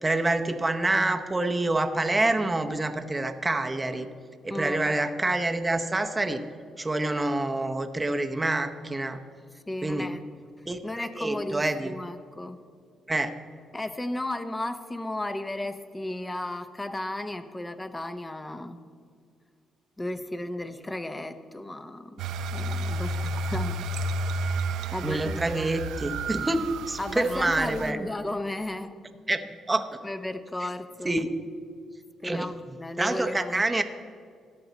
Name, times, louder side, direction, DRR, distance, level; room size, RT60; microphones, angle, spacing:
voice 1, 0.0-4.1 4.4-6.4 6.8-9.2 9.8-10.1 10.7-11.9 13.1-13.3 25.0-28.0 29.3-29.4 29.7-30.0 31.0-31.3 32.2-32.5 33.0-33.8, right 2 dB, 20° right, 7 dB, 0.8 m, -27 dB
voice 2, 4.5-4.8 9.7-10.2 10.8-12.6 13.7-18.8 20.0-22.2 22.5-23.8 24.4-24.6 24.9-25.7 27.0-29.0 30.0-31.2 32.2-33.6, left 1 dB, 15° left, 10 dB, 0.8 m, -34 dB
sound 1, 22.2-27.9, right 2 dB, 85° right, 0.6 m, -31 dB
14.0 x 10.0 x 4.1 m, 2.2 s
cardioid pair, 90°, 0 cm